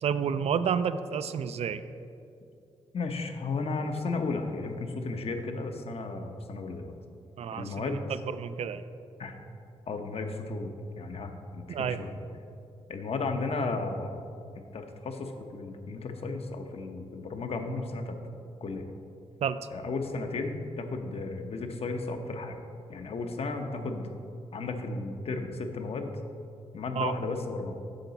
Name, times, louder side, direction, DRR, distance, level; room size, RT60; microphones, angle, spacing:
voice 1, 0.0-1.8 7.4-7.7 8.4-8.8 11.7-12.0 19.4-19.6 27.0-27.1, right 7 dB, 60° right, 12 dB, 0.4 m, -29 dB
voice 2, 2.9-6.9 7.5-8.1 9.2-9.4 9.9-12.2 12.9-14.1 14.7-18.2 18.6-18.8 19.7-22.6 22.9-24.1 24.5-26.1 26.7-27.8, left 3 dB, 55° left, 5 dB, 0.8 m, -34 dB
9.0 x 6.7 x 4.0 m, 2.6 s
cardioid pair, 85°, 12 cm